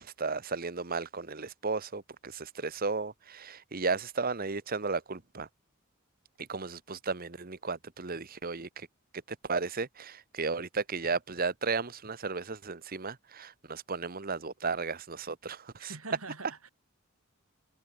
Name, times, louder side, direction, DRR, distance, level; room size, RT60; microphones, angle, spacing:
voice 1, 0.0-5.5 6.5-8.9 9.3-15.9, right 4 dB, 45° right, 1.2 m, -34 dB
voice 2, 15.8-16.7, right 3 dB, 80° right, 5.7 m, -44 dB
head